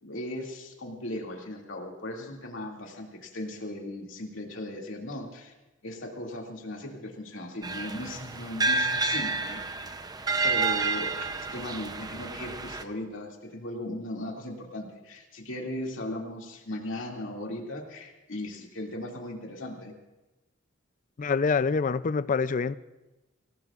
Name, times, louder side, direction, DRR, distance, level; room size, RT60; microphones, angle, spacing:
voice 1, 0.0-5.5 5.8-9.6 10.4-19.9, left 1 dB, 75° left, 2.4 m, -37 dB
sound 1, 7.6-12.8, right 3 dB, 20° right, 0.6 m, -29 dB
voice 2, 21.2-22.8, left 5 dB, 40° left, 0.4 m, -26 dB
25.5 x 17.0 x 2.5 m
head